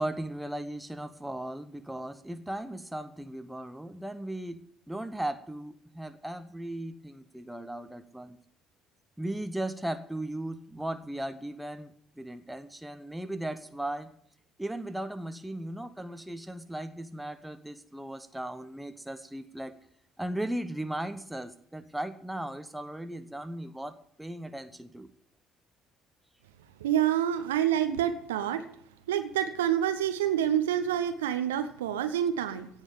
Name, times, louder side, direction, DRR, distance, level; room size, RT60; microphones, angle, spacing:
voice 1, 0.0-4.6 4.9-8.4 9.2-14.1 14.6-19.7 20.2-25.1, right 1 dB, 5° right, 8 dB, 1.0 m, -37 dB
voice 2, 26.8-28.6 29.1-32.7, right 10 dB, 75° right, 8 dB, 0.8 m, -27 dB
16.5 x 5.5 x 9.0 m, 0.66 s
figure-of-eight pair, 50°, 0 cm